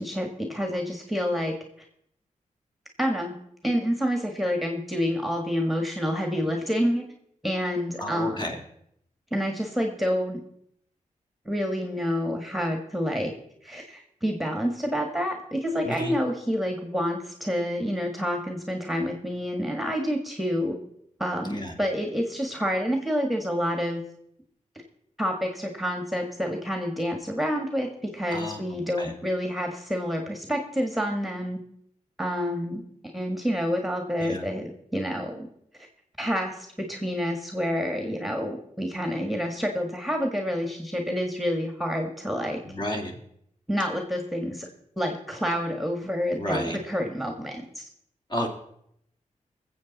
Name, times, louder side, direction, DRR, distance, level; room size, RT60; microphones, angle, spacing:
voice 1, 0.0-1.6 3.0-3.4 3.6-7.0 7.4-8.5 9.3-10.4 11.5-13.3 13.6-20.8 21.2-24.0 25.2-31.6 32.2-32.8 33.1-35.5 35.7-35.9 36.2-42.6 43.7-44.7 45.0-47.8, equal, ahead, 3 dB, 1.7 m, -28 dB
voice 2, 8.0-8.6 15.8-16.1 21.5-21.7 28.3-28.6 29.0-29.1 34.2-34.4 42.7-43.1 46.4-46.8 48.3-48.5, equal, 35° left, 1 dB, 2.6 m, -31 dB
20.5 x 7.8 x 4.1 m, 0.73 s
cardioid pair, 80°, 13 cm